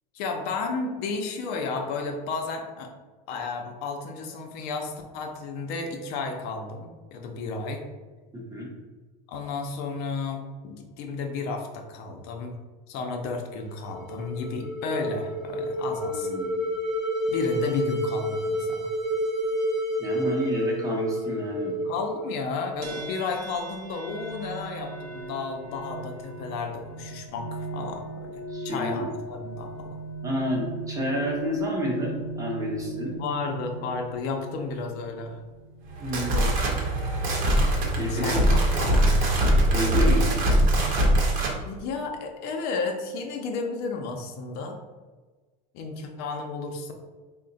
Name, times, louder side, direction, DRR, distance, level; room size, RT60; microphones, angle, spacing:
voice 1, 0.1-2.9 3.3-7.8 9.3-12.6 12.9-16.3 17.3-18.9 21.8-30.0 33.2-35.4 36.3-36.5 38.1-39.5 41.6-44.8 45.7-46.9, left 4 dB, 60° left, 3 dB, 0.6 m, -33 dB
voice 2, 8.3-8.7 16.1-16.6 20.0-21.8 28.5-29.1 30.2-33.2 36.0-36.8 38.0-38.4 39.7-40.4, equal, 20° right, -2 dB, 0.8 m, -30 dB
sound 1, 13.7-22.9, equal, 5° right, 0.5 m, -29 dB
sound 2, 22.8-36.3, right 2 dB, 75° right, 0.8 m, -38 dB
sound 3, 35.9-41.6, right 1 dB, 45° right, 0.9 m, -22 dB
3.6 x 2.1 x 3.9 m, 1.3 s
supercardioid pair, 135°, 19 cm